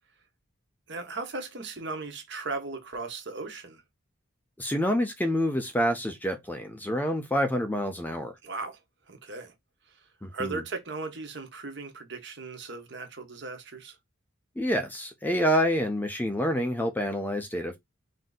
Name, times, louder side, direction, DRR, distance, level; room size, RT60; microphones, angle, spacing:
voice 1, 0.9-3.8 8.4-8.8 9.1-9.5 10.3-14.0, right 3 dB, 55° right, 1.1 m, -37 dB
voice 2, 4.6-8.3 10.2-10.6 14.6-17.8, equal, 10° left, 0.4 m, -27 dB
3.8 x 2.7 x 3.9 m
head